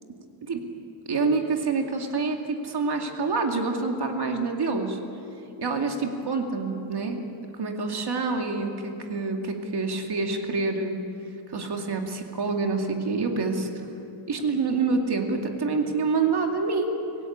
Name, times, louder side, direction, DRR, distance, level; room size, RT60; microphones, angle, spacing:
voice 1, 1.1-5.0 5.6-7.2 7.6-11.0 11.5-13.7 14.3-16.9, right 4 dB, 50° right, 3 dB, 2.4 m, -27 dB
25.5 x 17.0 x 8.7 m, 2.8 s
wide cardioid pair, 175°, 49 cm